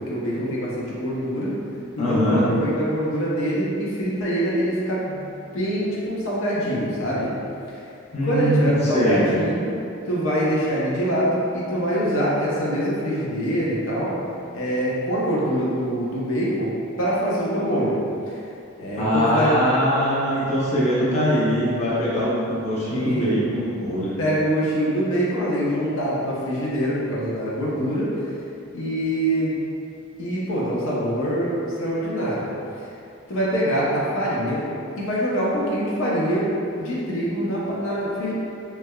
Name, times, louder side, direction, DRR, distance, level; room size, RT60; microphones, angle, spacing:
voice 1, 0.1-1.5 2.0-5.2 5.5-7.3 8.2-9.8 10.1-14.1 14.5-16.7 17.0-17.9 18.3-18.4 18.8-19.5 22.9-23.4 24.2-28.1 28.7-29.6 30.2-32.4 33.3-34.6 34.9-38.3, equal, 85° left, -7 dB, 0.7 m, -24 dB
voice 2, 2.0-2.4 8.1-9.2 19.0-24.2, equal, 35° left, -9 dB, 0.7 m, -22 dB
3.3 x 3.2 x 2.3 m, 2.6 s
head